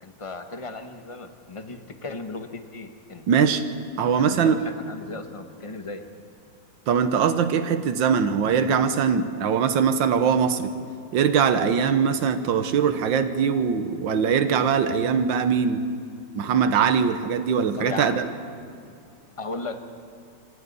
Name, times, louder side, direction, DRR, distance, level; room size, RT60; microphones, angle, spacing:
voice 1, 0.0-3.2 4.2-6.0 17.7-18.2 19.4-19.8, left 3 dB, 25° left, 6 dB, 0.8 m, -36 dB
voice 2, 3.3-3.6 4.0-4.6 6.9-10.7 11.1-15.8 16.4-18.3, right 7 dB, 85° right, 10 dB, 1.7 m, -21 dB
26.5 x 25.0 x 4.1 m, 2.4 s
omnidirectional pair, 2.0 m